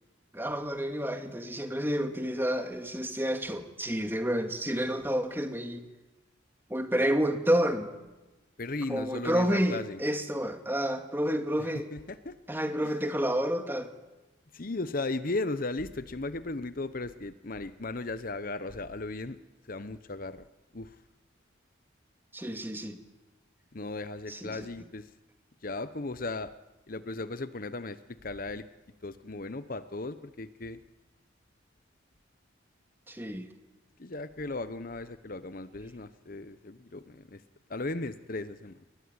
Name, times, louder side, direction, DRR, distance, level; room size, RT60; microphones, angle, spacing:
voice 1, 0.3-5.8 6.7-7.9 8.9-11.9 12.5-13.9 22.3-23.0 24.3-24.7 33.1-33.5, equal, 10° right, 6 dB, 2.3 m, -29 dB
voice 2, 8.6-10.0 11.6-12.3 12.8-12.9 14.5-19.4 19.6-20.5 20.7-21.0 23.7-25.1 25.6-26.5 26.9-28.7 29.0-30.8 34.0-37.4 37.7-38.8, left 2 dB, 45° left, 13 dB, 0.9 m, -36 dB
28.5 x 21.5 x 9.7 m, 1.1 s
head